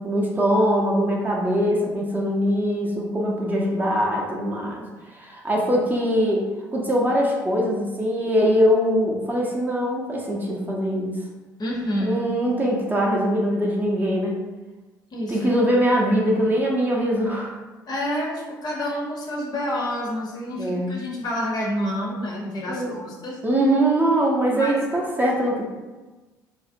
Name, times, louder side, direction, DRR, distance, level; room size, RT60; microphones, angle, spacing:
voice 1, 0.0-4.8 5.1-11.1 12.0-14.4 15.3-17.5 20.6-20.9 22.7-23.0 23.4-25.7, equal, 15° right, -3 dB, 0.5 m, -22 dB
voice 2, 11.6-12.2 15.1-15.4 17.9-23.4 24.5-24.8, equal, 40° left, -2 dB, 0.6 m, -28 dB
2.4 x 2.0 x 2.5 m, 1.2 s
figure-of-eight pair, 55°, 11 cm